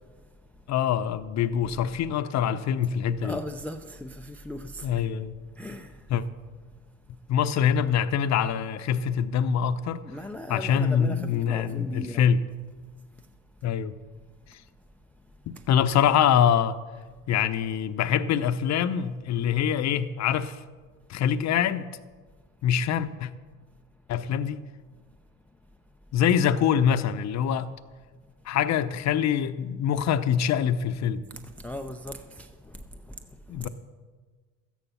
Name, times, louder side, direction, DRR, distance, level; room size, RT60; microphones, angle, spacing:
voice 1, 0.0-0.6 3.2-5.0 5.5-6.1 10.0-12.3 13.2-13.3 15.5-15.7 31.3-33.7, left 1 dB, 5° left, 0.4 m, -39 dB
voice 2, 0.7-3.4 4.8-5.4 6.1-6.2 7.3-10.0 10.5-12.4 13.6-13.9 15.5-16.8 17.3-20.6 21.1-21.9 22.6-23.3 24.1-24.6 26.1-27.7 28.5-31.2 33.5-33.7, left 8 dB, 40° left, 0.8 m, -24 dB
13.5 x 9.4 x 5.6 m
supercardioid pair, 100°, 41 cm